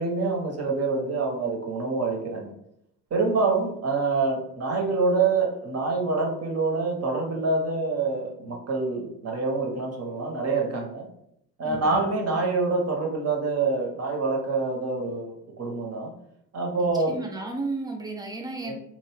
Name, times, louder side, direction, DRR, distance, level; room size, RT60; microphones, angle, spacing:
voice 1, 0.0-2.5 3.1-11.1 11.6-16.1 16.5-17.2 18.6-18.7, right 3 dB, 30° right, 0 dB, 0.9 m, -26 dB
voice 2, 11.6-11.9 16.8-18.7, right 2 dB, 10° right, 2 dB, 0.5 m, -34 dB
2.4 x 2.2 x 3.3 m, 0.76 s
hypercardioid pair, 65°, 49 cm